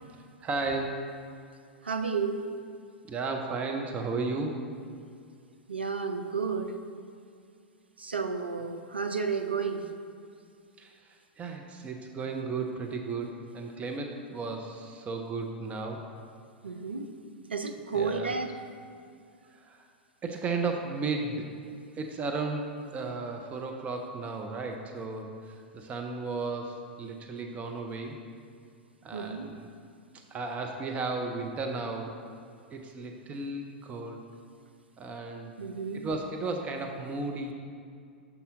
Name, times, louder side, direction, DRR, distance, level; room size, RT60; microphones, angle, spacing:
voice 1, 0.4-1.0 3.1-4.7 10.8-16.1 17.9-18.3 19.5-19.9 20.2-21.5 22.0-28.2 29.0-29.7 30.3-32.2 32.7-34.2 35.0-35.5 35.9-37.5, right 3 dB, 25° right, 3 dB, 0.6 m, -34 dB
voice 2, 1.8-2.4 5.7-6.7 8.0-9.8 16.6-17.1 17.5-18.5 29.1-29.5 35.6-36.0, right 5 dB, 85° right, 6 dB, 0.5 m, -31 dB
6.9 x 5.6 x 3.6 m, 2.3 s
figure-of-eight pair, 95°, 6 cm